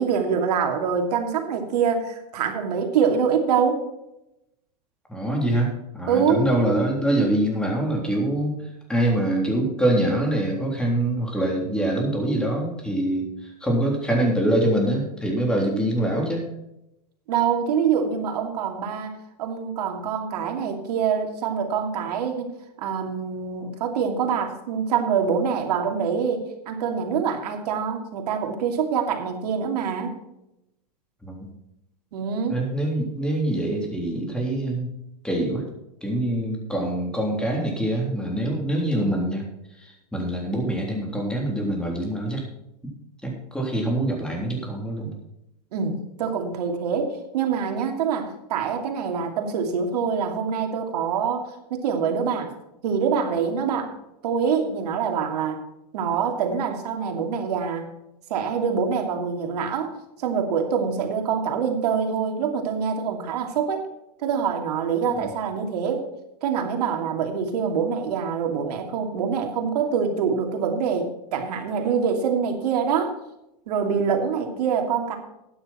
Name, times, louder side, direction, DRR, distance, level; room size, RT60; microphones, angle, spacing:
voice 1, 0.0-3.8 6.1-6.4 17.3-19.1 19.4-22.5 22.8-30.1 32.1-32.6 45.7-52.5 52.8-54.0 54.2-55.6 55.9-57.9 58.3-59.9 60.2-63.9 64.2-66.1 66.4-73.1 73.7-75.2, right 6 dB, 70° right, 4 dB, 2.7 m, -25 dB
voice 2, 5.1-8.6 8.9-16.5 31.2-31.5 32.5-34.9 35.2-35.6 36.0-39.4 39.8-42.4 43.2-45.1 65.2-65.3, right 1 dB, 5° left, 0 dB, 3.5 m, -24 dB
12.0 x 9.9 x 4.4 m, 0.87 s
hypercardioid pair, 130°, 21 cm